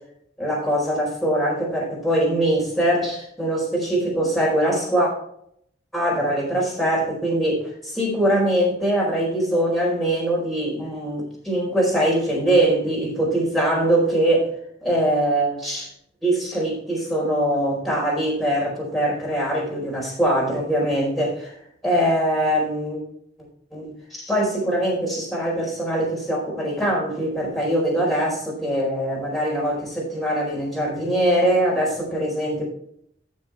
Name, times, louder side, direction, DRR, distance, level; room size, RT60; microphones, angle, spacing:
voice 1, 0.4-5.1 5.9-14.5 14.8-15.9 16.2-21.5 21.8-23.0 23.7-32.6, right 1 dB, ahead, -5 dB, 4.5 m, -22 dB
14.0 x 6.4 x 3.4 m, 0.69 s
head